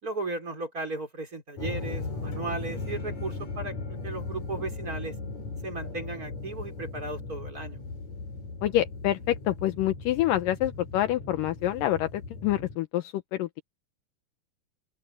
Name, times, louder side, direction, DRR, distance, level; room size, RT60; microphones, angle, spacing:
voice 1, 0.0-5.1 5.6-7.8, right 3 dB, 20° right, 4.7 m, -36 dB
sound 1, 1.6-12.8, left 3 dB, 45° left, 5.7 m, -37 dB
voice 2, 8.6-13.6, left 13 dB, 80° left, 2.0 m, -27 dB
open air
omnidirectional pair, 4.9 m